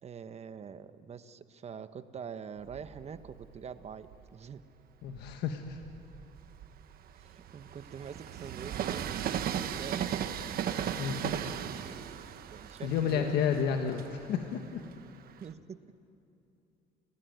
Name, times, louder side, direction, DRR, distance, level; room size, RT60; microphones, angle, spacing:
voice 1, 0.0-4.6 7.1-10.3 12.5-13.4 15.4-15.8, right 7 dB, 40° right, 11 dB, 1.1 m, -45 dB
Train, 2.6-4.3 4.9-15.5, right 9 dB, 60° right, 1.3 m, -37 dB
voice 2, 5.0-5.8 11.0-11.6 12.8-14.9, left 7 dB, 80° left, 5 dB, 1.5 m, -31 dB
29.5 x 17.5 x 9.4 m, 2.7 s
cardioid pair, 110°, 17 cm